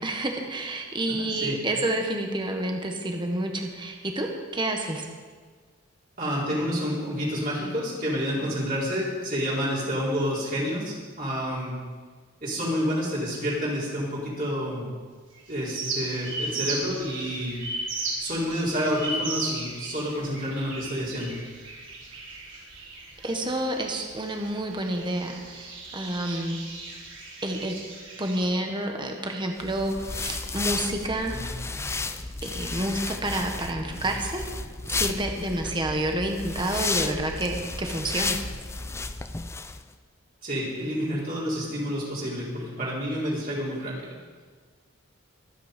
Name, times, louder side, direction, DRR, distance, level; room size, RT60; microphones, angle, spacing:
voice 1, 0.0-4.3 4.5-5.1 23.2-26.6 27.4-27.8 28.2-31.4 32.4-34.4 35.0-38.4, right 1 dB, 20° right, 3 dB, 1.4 m, -29 dB
voice 2, 1.1-1.5 6.2-11.7 12.4-14.9 15.5-17.6 18.2-21.4 40.4-44.2, equal, 40° right, -6 dB, 4.0 m, -29 dB
sound 1, 15.3-28.4, right 2 dB, 55° right, 4.7 m, -36 dB
sound 2, 29.6-39.8, left 3 dB, 10° left, 0.4 m, -33 dB
24.0 x 9.3 x 5.2 m, 1.5 s
head